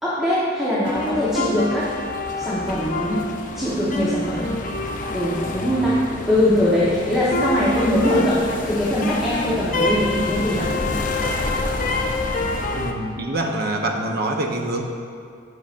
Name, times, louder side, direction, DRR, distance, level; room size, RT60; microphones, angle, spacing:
voice 1, 0.0-1.9 2.3-3.2 3.6-4.6 5.1-6.0 6.3-10.7, left 1 dB, ahead, -10 dB, 1.2 m, -22 dB
sound 1, 0.8-12.9, left 2 dB, 45° left, 0.7 m, -26 dB
voice 2, 12.8-14.8, right 1 dB, 55° right, 2 dB, 0.9 m, -25 dB
17.5 x 6.0 x 2.6 m, 2.3 s
head